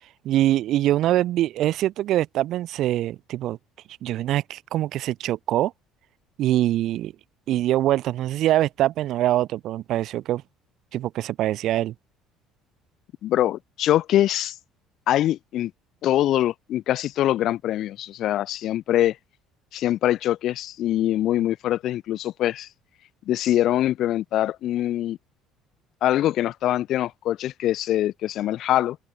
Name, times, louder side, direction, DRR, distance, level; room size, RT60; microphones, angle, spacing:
voice 1, 0.2-3.6 4.0-5.7 6.4-7.1 7.5-10.4 10.9-11.9, right 13 dB, 55° right, 0.5 m, -23 dB
voice 2, 13.2-14.5 15.1-15.7 16.0-19.2 19.7-22.7 23.3-25.2 26.0-29.0, left 13 dB, 55° left, 0.4 m, -23 dB
open air
cardioid pair, 150°, 0 cm